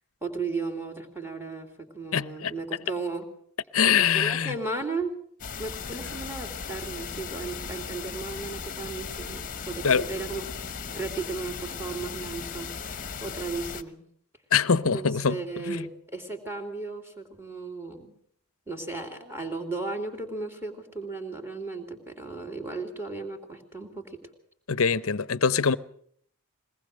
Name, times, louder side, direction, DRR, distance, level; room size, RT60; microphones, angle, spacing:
voice 1, 0.2-3.3 4.0-5.2 5.6-10.5 10.8-14.0 14.9-18.1 18.7-24.2, right 3 dB, 10° right, 3.0 m, -35 dB
voice 2, 2.1-2.5 3.7-4.5 9.8-10.1 14.5-15.4 15.7-15.9 24.7-25.8, left 6 dB, 65° left, 0.8 m, -23 dB
sound 1, 5.4-13.8, left 6 dB, 40° left, 1.0 m, -37 dB
22.0 x 19.0 x 6.6 m
head